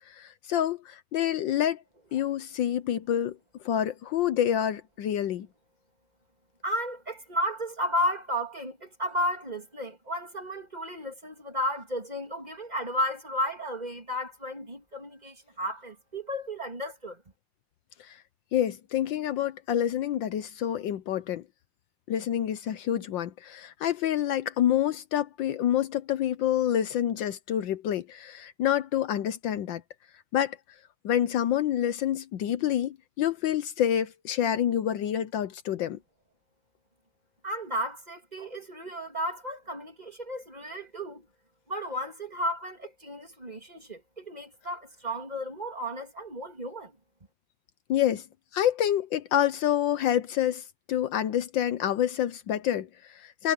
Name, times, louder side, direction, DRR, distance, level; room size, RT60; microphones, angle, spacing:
voice 1, 0.1-1.8 2.1-3.4 3.6-5.5 18.0-18.2 18.5-21.4 22.1-29.8 30.3-30.6 31.0-36.0 47.9-48.2 48.5-53.5, left 10 dB, 70° left, 1.3 m, -27 dB
voice 2, 6.6-17.2 37.4-41.2 41.7-46.9, equal, 20° right, 2.8 m, -33 dB
omnidirectional pair, 2.4 m